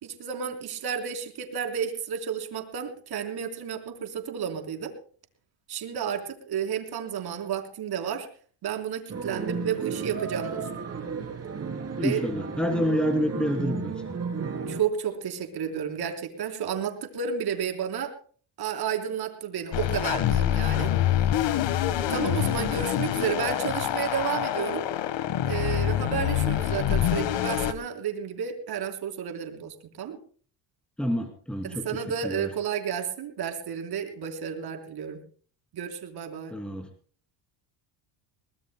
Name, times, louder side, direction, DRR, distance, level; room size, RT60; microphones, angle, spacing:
voice 1, 0.0-4.9 5.7-8.3 8.6-10.7 12.0-12.2 14.7-18.1 18.6-20.9 22.1-24.8 25.5-30.2 31.6-35.2 35.7-36.5, right 8 dB, 50° right, 5 dB, 3.8 m, -31 dB
sound 1, 9.1-14.8, right 5 dB, 30° right, 3.3 m, -33 dB
voice 2, 12.0-14.1 31.0-31.9 32.2-32.5 36.5-36.9, equal, ahead, 4 dB, 2.7 m, -28 dB
sound 2, 19.7-27.7, left 11 dB, 65° left, 1.5 m, -26 dB
22.5 x 19.5 x 2.2 m, 0.43 s
cardioid pair, 105°, 47 cm